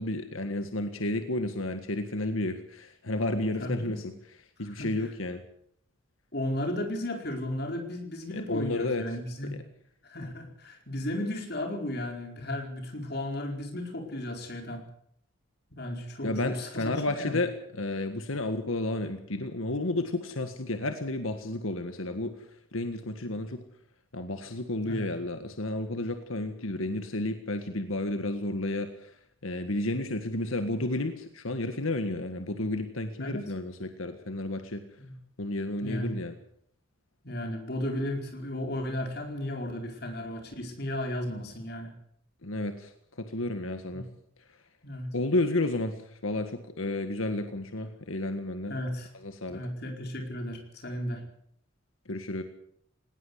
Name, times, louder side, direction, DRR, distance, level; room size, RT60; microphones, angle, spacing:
voice 1, 0.0-4.1 4.6-5.4 8.3-9.0 9.5-9.6 16.2-23.6 24.1-29.2 29.4-34.8 35.4-36.3 42.4-44.1 45.1-48.7 49.1-49.6 52.1-52.4, left 2 dB, 85° left, 7 dB, 1.8 m, -32 dB
voice 2, 3.6-4.0 4.7-5.1 6.3-9.5 10.0-14.8 15.7-17.4 24.8-25.1 33.2-33.5 35.0-35.1 35.8-36.2 37.2-41.9 43.9-44.0 44.8-45.1 48.7-49.1 49.5-51.2, left 1 dB, 50° left, 3 dB, 4.7 m, -34 dB
19.5 x 18.5 x 8.2 m, 0.67 s
head